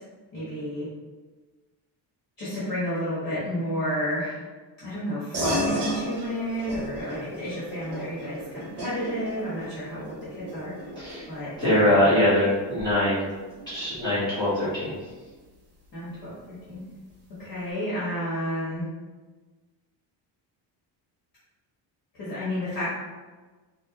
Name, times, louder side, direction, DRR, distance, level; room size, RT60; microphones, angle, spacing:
voice 1, 0.3-0.9 2.4-4.4 4.8-10.7 11.3-12.1 15.9-16.8 17.4-18.9 22.1-22.9, equal, 45° left, -10 dB, 1.5 m, -31 dB
sound 1, 5.3-15.2, equal, 30° right, 1.1 m, -35 dB
voice 2, 11.0-11.3 11.6-13.2 13.7-14.9, left 1 dB, 10° left, -14 dB, 1.4 m, -22 dB
4.5 x 2.5 x 2.9 m, 1.3 s
cardioid pair, 180°, 47 cm